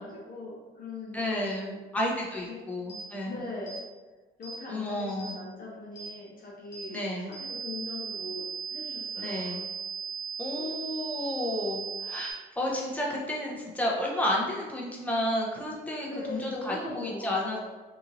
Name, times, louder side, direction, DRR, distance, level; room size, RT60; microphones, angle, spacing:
voice 1, 0.0-1.8 2.4-2.6 3.3-3.8 4.4-7.0 7.3-8.4 8.7-9.7 16.1-17.6, left 2 dB, 45° left, -4 dB, 0.8 m, -40 dB
voice 2, 1.1-3.3 4.7-5.3 6.9-7.3 9.2-9.6 10.4-17.6, left 1 dB, 5° left, -3 dB, 0.7 m, -31 dB
sound 1, 2.9-3.1 3.7-3.8 4.4-4.6 5.2-5.4 6.0-6.1 6.7-6.9 7.3-12.3, right 6 dB, 65° left, 1.2 m, -37 dB
2.9 x 2.6 x 2.6 m, 1.3 s
cardioid pair, 90°, 20 cm